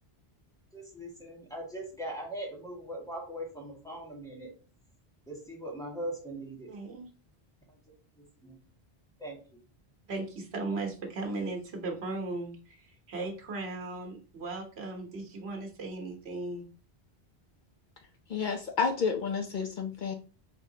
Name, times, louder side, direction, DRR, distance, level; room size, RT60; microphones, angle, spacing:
voice 1, 0.7-4.5 5.3-6.7 7.7-7.8 8.4-8.6 9.2-9.4, right 1 dB, 5° left, -4 dB, 1.7 m, -40 dB
voice 2, 6.7-7.1 10.1-16.7, right 3 dB, 85° right, 2 dB, 1.3 m, -37 dB
voice 3, 18.3-20.1, left 5 dB, 60° left, 4 dB, 0.7 m, -30 dB
4.8 x 3.5 x 2.7 m, 0.37 s
omnidirectional pair, 1.0 m